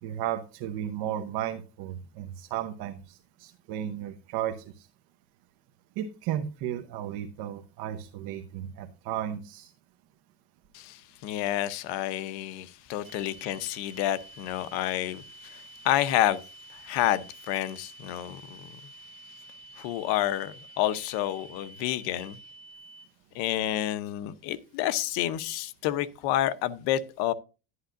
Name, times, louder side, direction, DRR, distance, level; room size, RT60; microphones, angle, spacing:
voice 1, 0.0-4.9 6.0-9.7, right 11 dB, 60° right, 1.0 m, -34 dB
voice 2, 10.7-16.4 16.7-18.8 19.8-22.4 23.3-27.3, left 13 dB, 70° left, 0.9 m, -29 dB
sound 1, 13.0-23.0, right 2 dB, 20° left, 3.1 m, -49 dB
11.0 x 11.0 x 2.6 m
cardioid pair, 155°, 43 cm